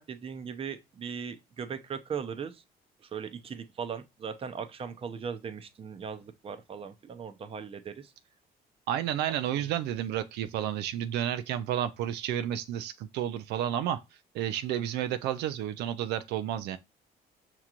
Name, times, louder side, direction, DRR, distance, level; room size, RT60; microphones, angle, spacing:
voice 1, 0.0-2.5 3.1-8.1, right 6 dB, 35° right, 0.7 m, -38 dB
voice 2, 8.9-14.0 14.3-16.8, right 11 dB, 80° right, 0.4 m, -31 dB
5.7 x 3.0 x 2.4 m
cardioid pair, 110°, 17 cm